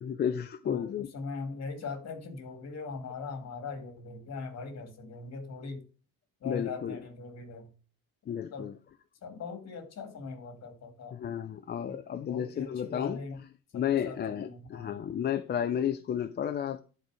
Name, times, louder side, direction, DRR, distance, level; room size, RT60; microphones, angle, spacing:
voice 1, 0.0-1.1 6.5-7.0 8.3-8.7 11.1-13.2 13.7-16.8, left 9 dB, 30° left, 0.4 m, -32 dB
voice 2, 0.6-5.8 6.4-7.7 8.5-8.7 9.2-11.2 11.9-13.4 13.7-15.0, left 4 dB, 45° left, 2.2 m, -41 dB
11.0 x 4.5 x 4.7 m
cardioid pair, 165°, 35 cm